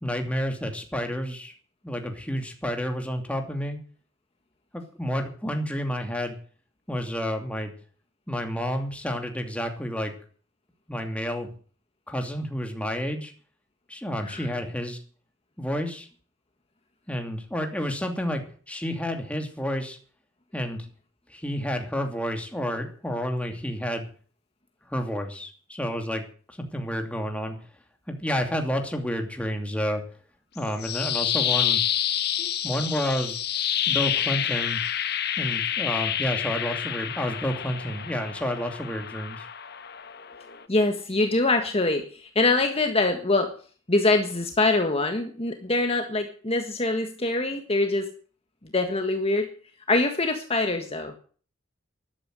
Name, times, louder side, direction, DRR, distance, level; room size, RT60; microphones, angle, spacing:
voice 1, 0.0-1.5 1.8-3.8 4.7-6.4 6.9-7.7 8.3-10.1 10.9-11.5 12.1-13.3 13.9-15.0 15.6-16.1 17.1-20.0 20.5-20.9 21.3-24.1 24.9-26.2 26.5-27.6 28.1-30.0 30.5-31.8 32.4-33.4 33.9-34.8 35.4-39.5, equal, 5° left, 4 dB, 2.7 m, -30 dB
sound 1, 30.6-40.6, left 10 dB, 55° left, 1.4 m, -28 dB
voice 2, 40.7-43.5 43.9-48.1 48.7-49.5 49.9-51.1, left 2 dB, 30° left, 5 dB, 1.6 m, -24 dB
13.5 x 12.0 x 7.7 m, 0.43 s
head